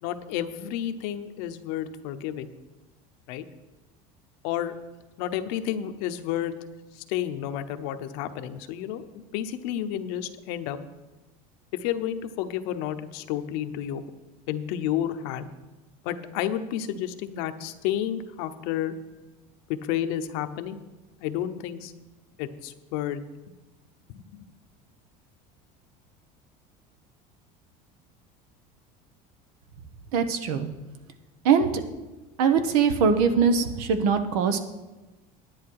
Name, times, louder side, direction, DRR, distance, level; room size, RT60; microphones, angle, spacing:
voice 1, 0.0-2.5 3.3-3.4 4.4-4.7 5.2-6.5 7.0-10.8 11.8-14.0 14.5-15.5 16.0-18.9 19.7-20.8 21.2-21.9 22.4-23.2 24.1-24.4, left 11 dB, 75° left, 9 dB, 0.9 m, -31 dB
voice 2, 30.1-30.7 31.4-31.7 32.4-34.6, right 6 dB, 85° right, 9 dB, 1.1 m, -22 dB
10.5 x 9.6 x 4.8 m, 1.1 s
supercardioid pair, 120°, 18 cm